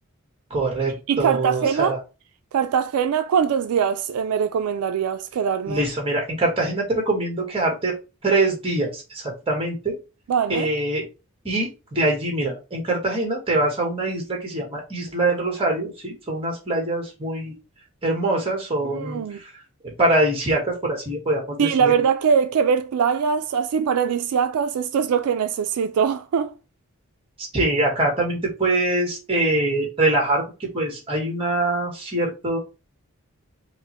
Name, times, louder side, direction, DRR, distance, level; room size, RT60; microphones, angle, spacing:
voice 1, 0.5-2.0 5.7-7.9 8.2-9.9 10.5-11.0 11.4-17.5 18.0-19.2 19.8-21.9 27.4-32.6, right 2 dB, 25° right, 1.3 m, -24 dB
voice 2, 1.1-2.0 2.5-5.8 10.3-10.7 18.8-19.4 21.6-26.5, right 7 dB, 85° right, 0.3 m, -22 dB
5.0 x 2.1 x 2.9 m
head